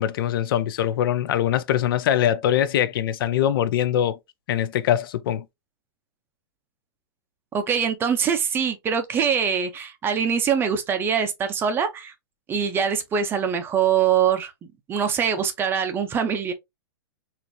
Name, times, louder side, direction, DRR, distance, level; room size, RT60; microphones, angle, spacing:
voice 1, 0.0-4.2 4.5-5.4, left 10 dB, 60° left, 0.4 m, -22 dB
voice 2, 7.5-12.1 12.5-16.5, right 7 dB, 15° right, 0.5 m, -23 dB
4.3 x 2.5 x 2.6 m
hypercardioid pair, 150°, 13 cm